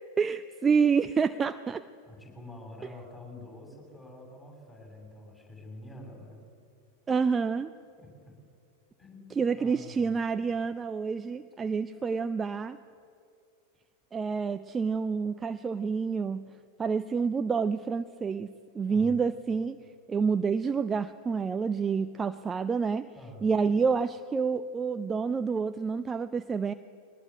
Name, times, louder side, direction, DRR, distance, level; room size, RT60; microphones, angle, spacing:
voice 1, 0.2-1.8 7.1-7.7 9.3-12.8 14.1-16.5 16.8-19.8 20.1-23.1 23.4-26.7, right 5 dB, 15° right, 10 dB, 0.6 m, -28 dB
voice 2, 2.1-6.4 8.0-8.4 9.0-10.1 18.9-19.1 23.1-23.5, left 1 dB, 15° left, 1 dB, 7.3 m, -47 dB
22.5 x 19.5 x 9.6 m, 2.3 s
figure-of-eight pair, 90°, 0 cm